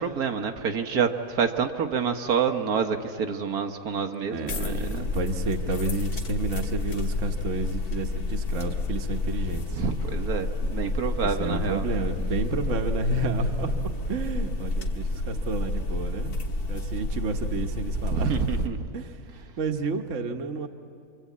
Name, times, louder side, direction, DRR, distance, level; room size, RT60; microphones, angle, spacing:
voice 1, 0.0-5.1 9.7-11.8 18.1-18.9, right 6 dB, 75° right, 5 dB, 1.5 m, -28 dB
voice 2, 4.3-9.8 11.2-16.3 16.7-18.6 18.9-20.7, right 2 dB, 55° right, 6 dB, 1.4 m, -30 dB
sound 1, 4.5-18.7, left 2 dB, 80° left, 2.0 m, -30 dB
26.0 x 24.5 x 8.5 m, 2.4 s
omnidirectional pair, 1.6 m